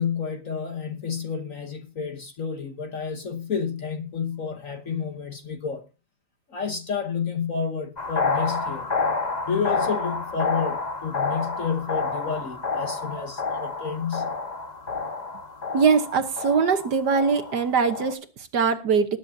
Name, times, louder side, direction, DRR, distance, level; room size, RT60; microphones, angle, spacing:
voice 1, 0.0-5.8 6.5-8.9 9.5-14.4, left 6 dB, 45° left, 1.3 m, -30 dB
sound 1, 8.0-18.1, left 4 dB, 25° left, 1.1 m, -29 dB
voice 2, 15.7-19.2, right 5 dB, 60° right, 1.5 m, -22 dB
20.0 x 9.9 x 2.7 m
omnidirectional pair, 2.3 m